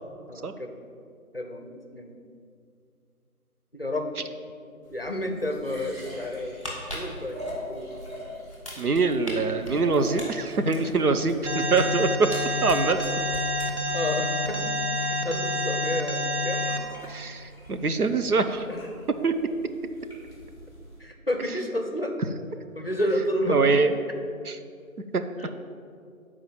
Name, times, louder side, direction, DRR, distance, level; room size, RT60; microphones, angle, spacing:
voice 1, 0.3-0.7 1.3-2.2 3.7-4.2 4.9-7.9 10.7-11.0 13.6-14.7 15.0-16.7 18.7-18.8 21.0-22.2 22.8-23.7 25.4-25.5, left 1 dB, 40° left, 4 dB, 0.7 m, -31 dB
sound 1, 4.8-21.0, equal, 20° right, 2.2 m, -45 dB
sound 2, 6.6-8.1 8.5-9.3 9.6-12.0 12.3-14.0 14.3-14.5, left 1 dB, 25° left, 1.7 m, -40 dB
voice 2, 8.8-13.0 17.1-18.7 19.2-19.4 23.5-23.9 24.5-24.6 25.1-25.2, right 4 dB, 85° right, 8 dB, 0.8 m, -24 dB
Alarm, 11.5-16.8, left 1 dB, 50° right, 0.7 m, -28 dB
7.7 x 4.8 x 7.3 m, 2.4 s
figure-of-eight pair, 165°, 44 cm